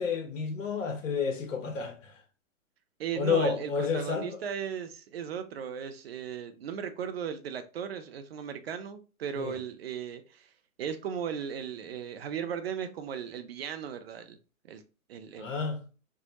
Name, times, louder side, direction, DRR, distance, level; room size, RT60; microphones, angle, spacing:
voice 1, 0.0-2.2 3.2-4.4 9.4-9.6 15.4-15.8, left 5 dB, 60° left, 1.1 m, -30 dB
voice 2, 3.0-10.5 10.8-14.4 14.6-14.8 15.1-15.5, right 8 dB, 45° right, 0.5 m, -36 dB
4.4 x 2.1 x 2.8 m
figure-of-eight pair, 115°, 43 cm